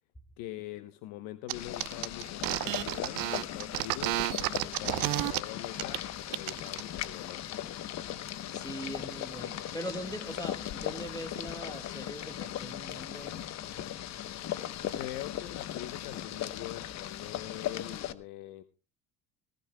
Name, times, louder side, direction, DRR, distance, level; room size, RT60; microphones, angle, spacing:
voice 1, 0.4-6.1 6.3-7.4 14.9-18.6, left 14 dB, 75° left, 10 dB, 1.0 m, -43 dB
Boiling, 1.5-18.1, left 11 dB, 50° left, 1.0 m, -38 dB
sound 1, 1.5-1.6 1.8-5.4 5.8-6.0 6.3-6.8, right 18 dB, 65° right, 0.8 m, -31 dB
voice 2, 8.5-13.3, equal, 10° left, 7 dB, 1.7 m, -41 dB
19.5 x 16.0 x 2.2 m, 0.31 s
cardioid pair, 115°, 36 cm